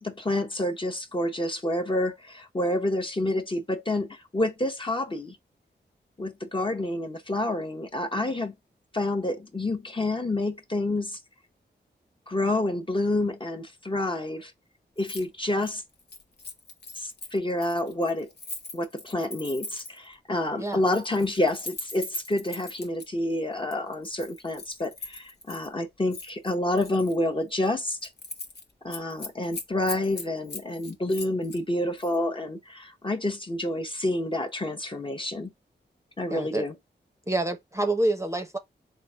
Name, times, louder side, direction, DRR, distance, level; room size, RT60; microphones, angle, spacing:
voice 1, 0.0-5.4 6.2-8.5 8.9-11.2 12.3-14.5 15.0-15.8 17.0-18.3 18.7-28.1 28.8-35.5 36.2-36.7, left 1 dB, 30° left, 0.8 m, -28 dB
Keys jangling, 15.0-15.3 15.5-20.1 20.7-23.1 23.7-25.7 26.1-27.2 27.5-27.7 28.0-28.6 28.9-31.6 32.0-32.2, left 2 dB, 65° left, 0.9 m, -40 dB
voice 2, 36.3-36.7 37.3-38.6, right 2 dB, 15° right, 0.7 m, -27 dB
3.8 x 2.1 x 4.3 m
cardioid pair, 70°, 18 cm